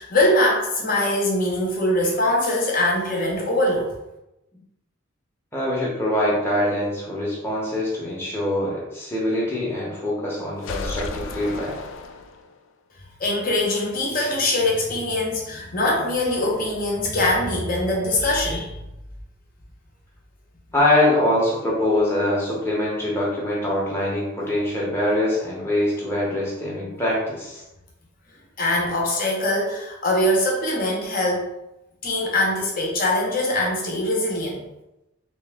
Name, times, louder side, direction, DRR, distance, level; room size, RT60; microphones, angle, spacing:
voice 1, 0.0-3.9 13.2-18.8 28.6-31.5 32.0-34.6, left 1 dB, 45° left, -2 dB, 0.9 m, -22 dB
voice 2, 5.5-11.8 20.7-27.6, left 1 dB, 10° left, -6 dB, 0.9 m, -23 dB
sound 1, 10.6-12.7, left 3 dB, 70° left, 0.4 m, -33 dB
3.3 x 3.0 x 3.5 m, 0.93 s
head